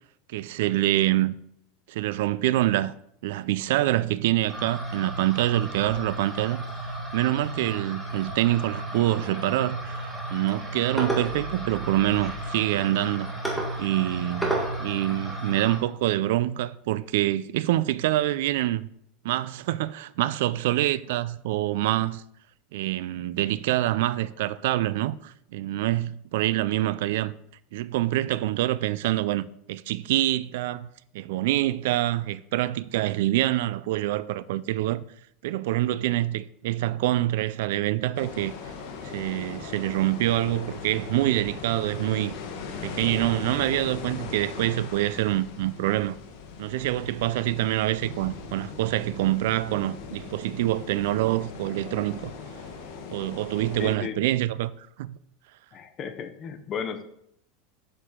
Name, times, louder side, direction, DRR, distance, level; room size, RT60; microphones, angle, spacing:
voice 1, 0.3-1.3 1.9-2.9 3.2-6.6 7.1-13.3 13.8-18.9 19.2-22.2 22.7-27.3 27.7-30.9 31.1-35.0 35.4-38.5 39.0-42.3 42.8-46.2 46.6-52.3 53.1-55.2, right 15 dB, 75° right, 0.4 m, -26 dB
sound 1, 4.5-15.8, right 1 dB, 5° right, 1.5 m, -33 dB
sound 2, 38.1-53.9, left 5 dB, 65° left, 1.3 m, -39 dB
voice 2, 53.8-54.2 55.7-57.0, left 7 dB, 35° left, 0.8 m, -34 dB
6.9 x 6.4 x 3.7 m
supercardioid pair, 140°, 0 cm